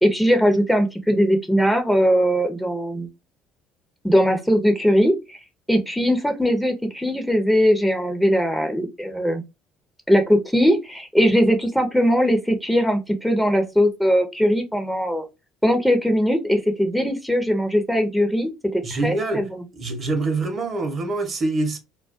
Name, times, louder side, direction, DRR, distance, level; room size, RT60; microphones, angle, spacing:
voice 1, 0.0-3.1 4.0-5.4 5.7-9.4 10.1-15.2 15.6-19.6, equal, 5° left, 0.7 m, -20 dB
voice 2, 18.8-19.4 19.8-21.8, right 3 dB, 45° right, 0.9 m, -25 dB
2.3 x 2.2 x 2.5 m
hypercardioid pair, 65°, 0 cm